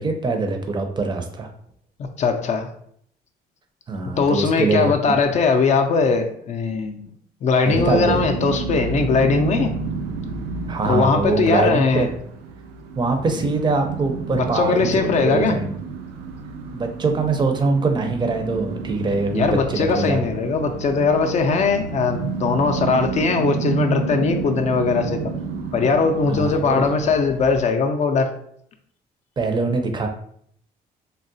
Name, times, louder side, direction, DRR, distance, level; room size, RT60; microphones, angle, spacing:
voice 1, 0.0-1.5 3.9-4.9 7.7-8.3 10.7-12.1 13.0-15.8 16.7-20.5 26.3-26.8 29.4-30.1, right 3 dB, 25° right, 5 dB, 0.5 m, -23 dB
voice 2, 2.2-2.7 4.2-7.1 7.4-9.7 10.9-12.1 14.3-15.6 19.3-25.3 25.7-28.3, left 4 dB, 45° left, 6 dB, 0.4 m, -20 dB
sound 1, 7.7-27.6, right 5 dB, 80° right, 0.4 m, -30 dB
3.6 x 2.0 x 2.6 m, 0.65 s
cardioid pair, 110°, 17 cm